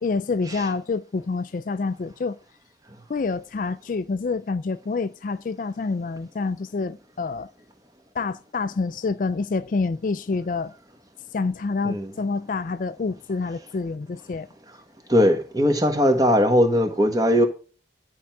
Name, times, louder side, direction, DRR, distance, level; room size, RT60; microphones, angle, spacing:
voice 1, 0.0-2.4 3.1-7.5 8.1-10.7 11.3-14.5, left 4 dB, 50° left, 0.4 m, -27 dB
voice 2, 15.1-17.5, equal, 20° right, 1.4 m, -19 dB
11.5 x 4.6 x 5.9 m
head